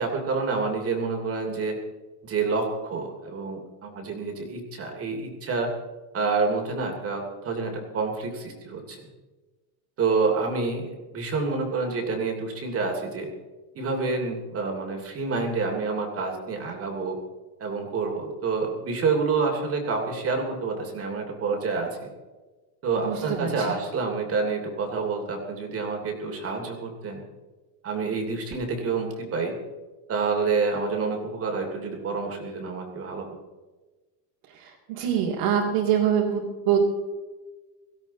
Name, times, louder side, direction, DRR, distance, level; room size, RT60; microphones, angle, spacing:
voice 1, 0.0-1.8 2.2-5.7 6.1-9.0 10.0-13.3 13.7-17.2 17.6-22.1 22.8-27.2 27.8-29.5 30.1-33.4, right 4 dB, 30° right, 2 dB, 3.0 m, -28 dB
voice 2, 23.0-23.5 34.9-36.8, right 9 dB, 65° right, -4 dB, 3.7 m, -24 dB
17.5 x 16.0 x 4.2 m, 1.2 s
cardioid pair, 150°, 44 cm